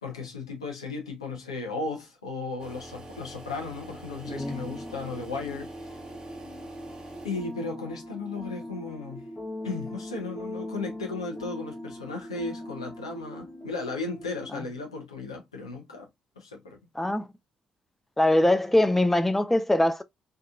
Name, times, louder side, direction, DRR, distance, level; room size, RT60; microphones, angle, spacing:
voice 1, 0.0-6.0 7.2-9.3 9.6-16.1 16.4-16.8, left 3 dB, 90° left, 0.5 m, -35 dB
sound 1, 2.6-7.8, right 1 dB, 25° right, 0.8 m, -45 dB
sound 2, 4.2-14.5, left 1 dB, 35° left, 0.9 m, -40 dB
voice 2, 4.2-4.6 14.5-14.6 17.0-17.3 18.2-20.0, left 1 dB, 5° left, 0.3 m, -23 dB
2.8 x 2.2 x 2.3 m
figure-of-eight pair, 40°, 3 cm